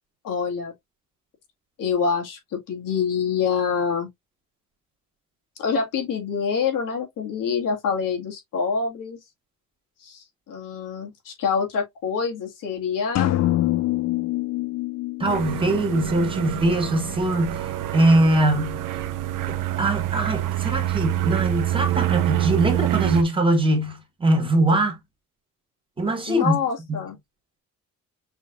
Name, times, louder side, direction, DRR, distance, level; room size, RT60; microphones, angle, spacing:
voice 1, 0.2-0.7 1.8-4.1 5.6-9.2 10.0-13.3 26.3-27.2, left 6 dB, 80° left, 1.9 m, -26 dB
sound 1, 13.2-17.0, left 16 dB, 55° left, 0.5 m, -26 dB
voice 2, 15.2-18.8 19.5-25.0 26.0-26.6 26.9-27.0, right 1 dB, 15° right, 1.5 m, -22 dB
sound 2, 15.3-23.2, right 13 dB, 80° right, 0.8 m, -26 dB
6.2 x 3.2 x 2.4 m
cardioid pair, 155°, 32 cm